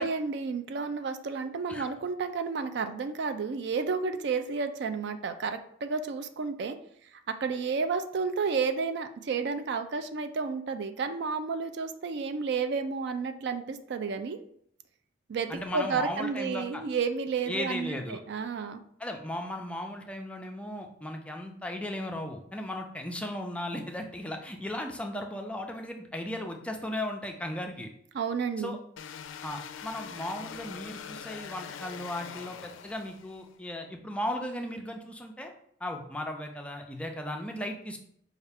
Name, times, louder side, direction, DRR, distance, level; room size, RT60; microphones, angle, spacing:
voice 1, 0.0-6.8 7.3-14.4 15.3-18.8 28.1-28.8, right 5 dB, 60° right, 8 dB, 0.4 m, -31 dB
voice 2, 15.5-16.8 17.5-18.2 19.0-27.9 28.6-28.8 29.4-35.5 35.8-38.0, left 1 dB, 5° left, 3 dB, 0.4 m, -36 dB
sound 1, 29.0-33.5, left 7 dB, 85° left, 0.3 m, -43 dB
5.4 x 2.4 x 3.4 m, 0.67 s
head